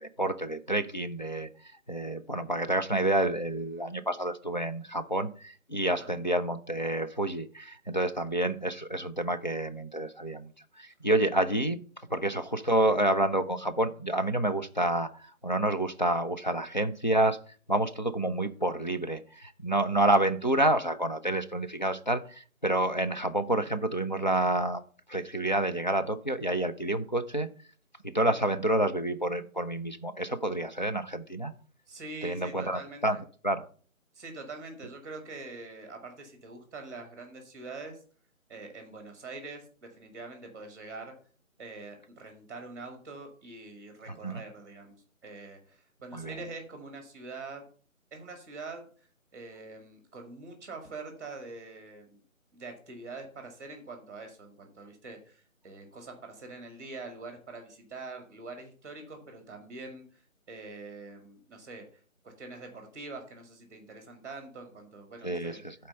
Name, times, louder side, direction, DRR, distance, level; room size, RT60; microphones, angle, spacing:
voice 1, 0.0-1.5 1.9-10.5 10.8-11.8 12.1-17.4 17.7-24.8 25.1-27.5 28.0-31.5 32.2-33.2 33.4-33.6 44.1-44.4 46.1-46.4 65.2-65.7, right 1 dB, 35° left, 6 dB, 0.4 m, -28 dB
voice 2, 31.9-33.2 34.1-38.0 38.5-41.1 41.6-45.0 45.2-47.6 48.1-48.9 49.3-52.2 52.5-61.8 62.2-65.6, right 3 dB, 15° right, 5 dB, 1.4 m, -44 dB
11.0 x 4.3 x 5.3 m, 0.42 s
figure-of-eight pair, 160°, 42 cm